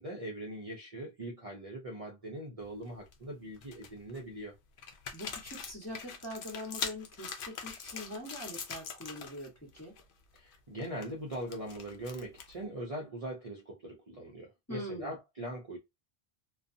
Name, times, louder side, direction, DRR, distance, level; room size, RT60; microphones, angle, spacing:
voice 1, 0.0-4.6 10.3-15.8, right 1 dB, 40° right, 0.6 m, -41 dB
sound 1, 2.7-3.1 3.6-4.2 4.8-9.5 9.7-10.0 10.4-12.6, left 6 dB, 65° left, 0.7 m, -43 dB
voice 2, 5.1-9.9 14.7-15.1, left 1 dB, 15° left, 1.0 m, -43 dB
2.5 x 2.3 x 2.5 m
omnidirectional pair, 1.0 m